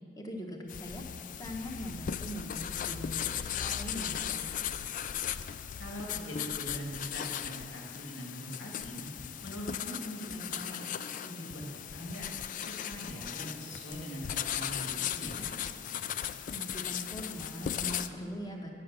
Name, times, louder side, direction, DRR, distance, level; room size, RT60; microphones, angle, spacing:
voice 1, 0.2-4.5 16.5-18.7, equal, 20° left, 1 dB, 1.1 m, -41 dB
sound 1, 0.7-18.1, left 9 dB, 45° left, 0.3 m, -37 dB
voice 2, 5.8-9.1 9.4-10.9 11.1-12.3 12.6-15.5, equal, 85° left, -2 dB, 2.2 m, -42 dB
9.5 x 6.9 x 6.7 m, 2.5 s
head